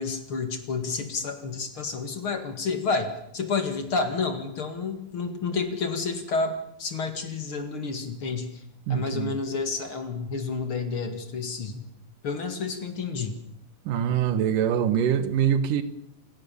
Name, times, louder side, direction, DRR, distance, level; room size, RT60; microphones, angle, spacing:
voice 1, 0.0-8.6 8.9-11.9 12.2-13.4, left 4 dB, 45° left, 2.7 m, -30 dB
voice 2, 8.9-9.3 13.9-15.8, right 9 dB, 90° right, 3.0 m, -24 dB
27.5 x 16.0 x 7.0 m
omnidirectional pair, 3.7 m